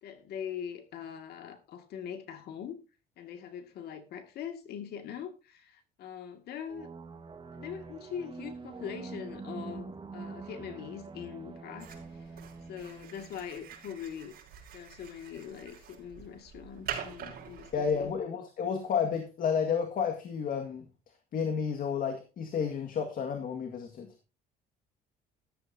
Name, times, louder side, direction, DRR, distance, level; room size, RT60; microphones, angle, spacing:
voice 1, 0.0-2.8 3.2-6.9 7.5-12.4 12.7-14.4 14.7-18.1, left 8 dB, 70° left, 2.2 m, -42 dB
sound 1, 6.7-14.1, right 4 dB, 30° right, 1.6 m, -45 dB
sound 2, 11.8-18.2, right 8 dB, 65° right, 5.2 m, -45 dB
voice 2, 17.7-20.9 21.3-24.1, left 6 dB, 55° left, 2.0 m, -31 dB
14.0 x 12.5 x 2.8 m
cardioid pair, 110°, 17 cm